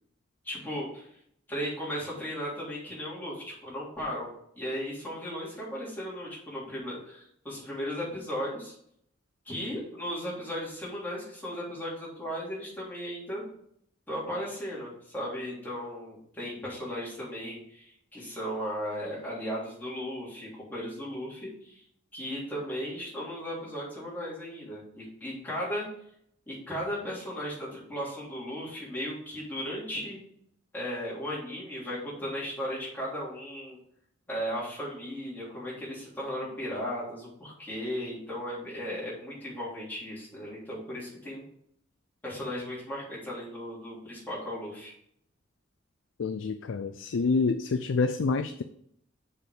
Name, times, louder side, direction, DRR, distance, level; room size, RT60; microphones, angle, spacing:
voice 1, 0.4-1.1 1.5-4.3 4.6-8.7 9.5-13.4 14.1-21.8 22.1-25.8 26.5-30.2 30.7-33.8 34.3-41.4 42.2-44.9, equal, 10° left, -7 dB, 3.5 m, -36 dB
voice 2, 46.2-48.6, left 4 dB, 85° left, 10 dB, 0.4 m, -27 dB
7.0 x 5.1 x 6.0 m, 0.70 s
head